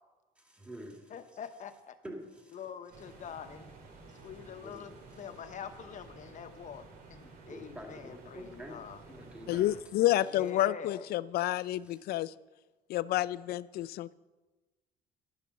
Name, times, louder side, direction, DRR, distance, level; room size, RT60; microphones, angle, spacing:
voice 1, 0.4-1.4 2.0-2.6 4.6-4.8 5.1-5.3 7.5-8.8 9.0-9.7 11.8-12.2 13.7-13.9, equal, 5° right, 1 dB, 2.3 m, -48 dB
voice 2, 1.1-2.0 2.5-3.7 4.2-9.0 10.3-11.1, left 8 dB, 45° left, 9 dB, 0.9 m, -45 dB
Stormy Night, 2.9-9.8, right 3 dB, 60° right, 2.9 m, -53 dB
voice 3, 9.5-12.3 12.9-14.1, left 14 dB, 70° left, 18 dB, 0.4 m, -29 dB
11.0 x 6.9 x 6.3 m, 1.2 s
cardioid pair, 110°, 17 cm